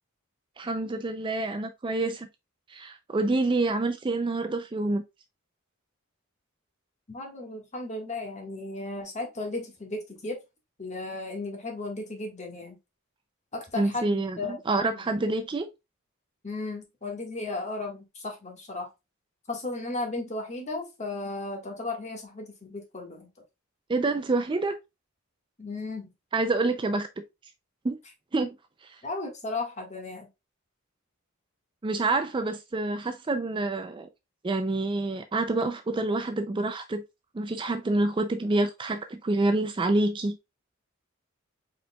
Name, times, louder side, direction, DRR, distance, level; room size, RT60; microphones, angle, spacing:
voice 1, 0.6-2.3 2.7-5.0 13.7-15.7 23.9-24.8 26.3-27.1 27.8-28.0 28.3-28.6 28.8-29.0 31.8-34.1 34.4-37.0 37.3-40.4, right 2 dB, 20° right, 0.3 m, -27 dB
voice 2, 7.1-10.4 10.8-12.8 13.5-14.5 14.8-15.0 16.4-18.9 19.5-23.3 25.6-26.1 29.0-30.3, left 2 dB, 35° left, 1.6 m, -35 dB
5.1 x 4.4 x 2.2 m
head